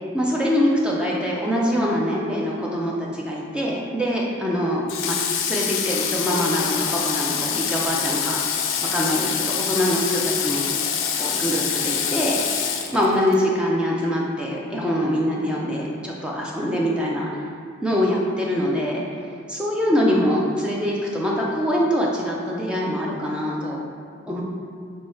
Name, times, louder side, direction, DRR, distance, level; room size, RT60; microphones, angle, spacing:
voice 1, 0.1-5.2 5.4-8.4 8.9-10.7 11.1-12.4 12.9-17.3 17.8-19.0 19.5-23.8 24.3-24.4, equal, 5° right, -4 dB, 0.4 m, -24 dB
Water / Water tap faucet, 4.9-13.4, left 7 dB, 85° left, 0.4 m, -25 dB
4.5 x 2.3 x 4.2 m, 2.1 s
head